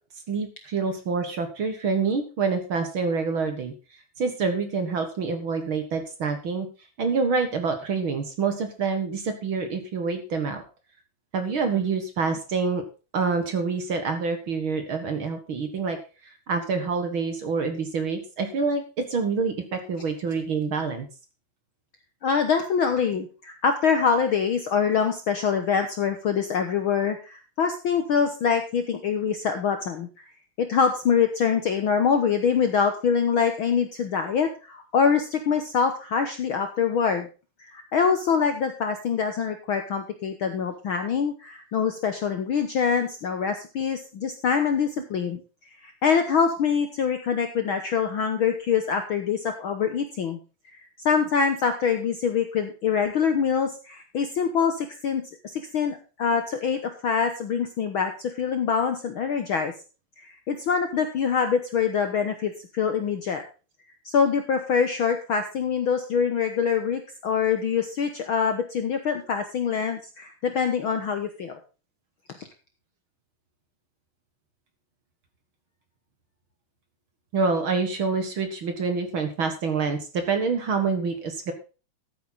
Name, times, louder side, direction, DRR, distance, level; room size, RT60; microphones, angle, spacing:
voice 1, 0.3-3.7 4.2-6.7 7.0-10.6 11.3-12.8 13.1-16.0 16.2-21.1 77.3-81.5, right 4 dB, 50° right, 7 dB, 2.1 m, -27 dB
voice 2, 22.2-30.3 30.6-37.3 37.6-45.4 45.8-50.4 50.7-50.8 51.0-59.7 60.2-63.4 64.0-71.6, left 6 dB, 60° left, 7 dB, 1.4 m, -24 dB
13.5 x 8.7 x 4.0 m, 0.33 s
omnidirectional pair, 3.4 m